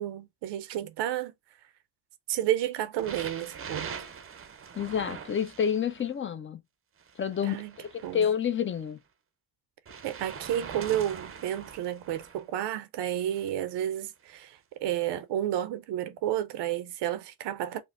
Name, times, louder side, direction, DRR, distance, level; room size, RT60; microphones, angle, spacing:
voice 1, 0.0-1.3 2.3-3.9 7.4-7.7 8.0-8.3 10.0-17.8, right 11 dB, 90° right, 0.5 m, -31 dB
sound 1, 3.0-6.1 7.0-8.8 9.9-12.4 13.2-13.5 14.3-14.4, right 6 dB, 35° right, 0.5 m, -43 dB
voice 2, 4.8-6.6 7.2-9.0, left 8 dB, 30° left, 0.4 m, -29 dB
5.1 x 2.0 x 2.4 m
cardioid pair, 90°, 40 cm